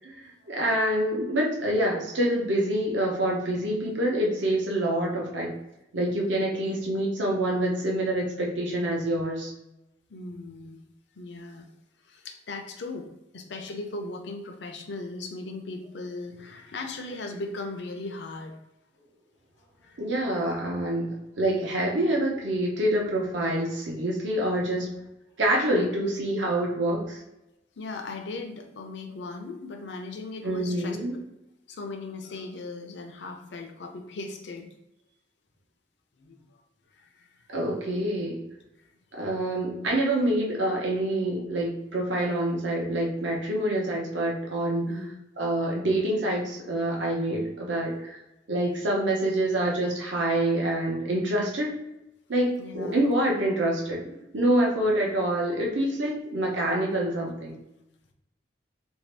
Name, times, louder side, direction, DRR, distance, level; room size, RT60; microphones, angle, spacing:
voice 1, 0.0-5.5 5.9-9.5 20.0-24.9 25.4-27.2 30.4-31.1 37.5-38.4 39.1-44.8 45.4-48.2 48.5-51.8 52.3-57.5, right 1 dB, 80° right, -1 dB, 0.8 m, -26 dB
voice 2, 10.1-10.8 11.2-11.7 12.1-13.1 13.3-18.6 19.8-20.0 27.8-31.2 31.7-34.7 36.2-36.4 36.9-37.3 44.9-45.1 52.6-53.1, left 3 dB, 70° left, 4 dB, 0.5 m, -38 dB
2.9 x 2.7 x 3.3 m, 0.90 s
head